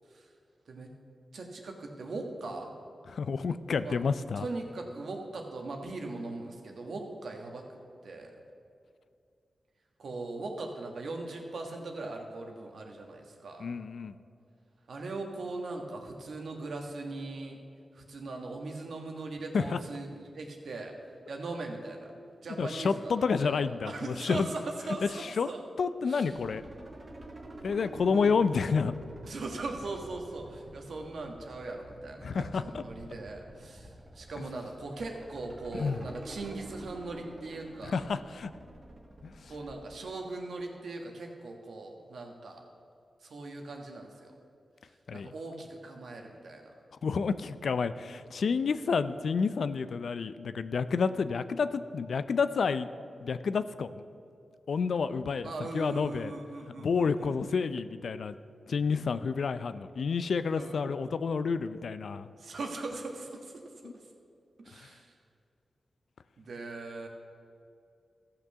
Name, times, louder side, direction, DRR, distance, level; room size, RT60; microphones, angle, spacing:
voice 1, 1.3-2.7 3.8-3.9 4.4-7.6 8.0-8.3 10.0-13.7 14.9-17.6 17.9-20.9 21.3-22.1 22.4-25.6 26.0-26.4 28.0-28.4 29.2-38.0 39.5-42.6 43.2-44.3 45.1-46.6 55.4-57.5 60.6-61.1 62.4-63.6 64.6-65.1 66.4-67.1, right 2 dB, 75° right, 2 dB, 1.5 m, -40 dB
voice 2, 3.1-4.5 13.6-14.1 19.5-19.8 22.6-24.5 25.0-25.5 25.8-26.6 27.6-28.9 32.2-32.8 35.7-36.1 37.8-38.5 39.2-39.5 45.1-45.3 47.0-52.9 53.2-54.0 54.7-56.3 56.8-58.4 58.7-62.3 63.8-63.9 64.8-64.9, left 5 dB, 75° left, 13 dB, 0.4 m, -30 dB
sound 1, 26.3-40.1, right 1 dB, 50° right, 1.5 m, -49 dB
14.0 x 5.9 x 6.7 m, 2.4 s
cardioid pair, 45°, 0 cm